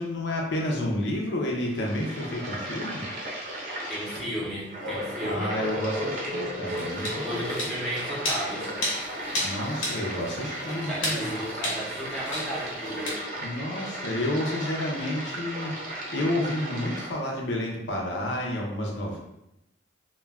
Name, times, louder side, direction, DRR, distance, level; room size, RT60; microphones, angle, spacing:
voice 1, 0.0-3.1 5.2-7.8 9.4-11.3 13.4-19.2, left 1 dB, 65° left, -1 dB, 0.5 m, -30 dB
sound 1, 1.5-17.1, right 1 dB, 40° right, 0.6 m, -36 dB
voice 2, 3.9-5.5 7.2-8.7 10.8-13.2, equal, 5° left, -6 dB, 0.6 m, -34 dB
sound 2, 4.8-8.5, left 1 dB, 85° right, 0.5 m, -35 dB
sound 3, 6.7-13.1, left 1 dB, 90° left, 0.9 m, -34 dB
2.2 x 2.2 x 3.2 m, 0.87 s
head